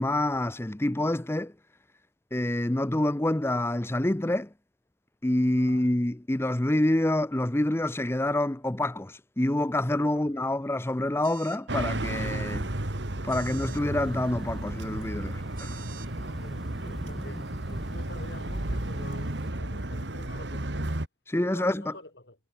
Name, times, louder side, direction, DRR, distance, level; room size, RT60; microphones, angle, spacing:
voice 1, 0.0-1.5 2.3-4.5 5.2-12.7 13.2-15.8 21.3-21.9, left 1 dB, 15° left, 0.7 m, -27 dB
voice 2, 5.6-5.9 10.0-10.4 15.8-20.9 21.4-22.4, left 2 dB, 70° left, 7.2 m, -48 dB
sound 1, 11.2-11.7 13.3-13.8 15.6-16.1, right 10 dB, 55° right, 5.2 m, -47 dB
sound 2, 11.7-21.1, right 1 dB, 80° right, 2.2 m, -33 dB
sound 3, 13.7-19.5, equal, ahead, 1.2 m, -44 dB
head